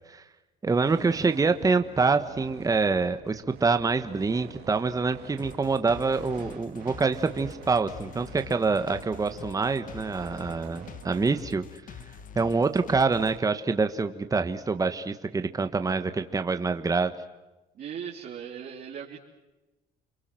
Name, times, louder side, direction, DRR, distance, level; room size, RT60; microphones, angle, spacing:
voice 1, 0.6-11.7 12.3-17.1, right 4 dB, 20° right, 9 dB, 1.4 m, -26 dB
sound 1, 0.8-11.4, right 10 dB, 75° right, 3.5 m, -47 dB
sound 2, 5.4-13.4, left 7 dB, 50° left, 2.0 m, -45 dB
voice 2, 17.7-19.2, right 8 dB, 55° right, -1 dB, 3.6 m, -38 dB
30.0 x 23.0 x 7.7 m, 1.1 s
cardioid pair, 110°, 17 cm